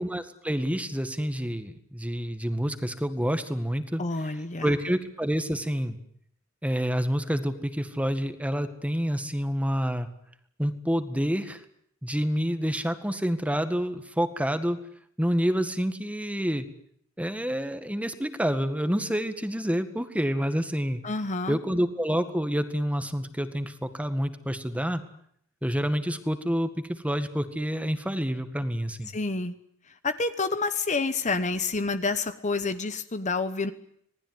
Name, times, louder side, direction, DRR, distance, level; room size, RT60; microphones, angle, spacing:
voice 1, 0.0-4.3 4.6-6.0 6.6-10.1 10.6-11.6 12.0-14.8 15.2-16.7 17.2-21.0 21.5-25.0 25.6-29.1, equal, 5° right, 9 dB, 1.9 m, -28 dB
voice 2, 4.0-4.7 21.0-21.6 29.1-29.5 30.0-33.7, left 3 dB, 35° left, 11 dB, 1.1 m, -28 dB
26.5 x 19.5 x 9.6 m, 0.68 s
head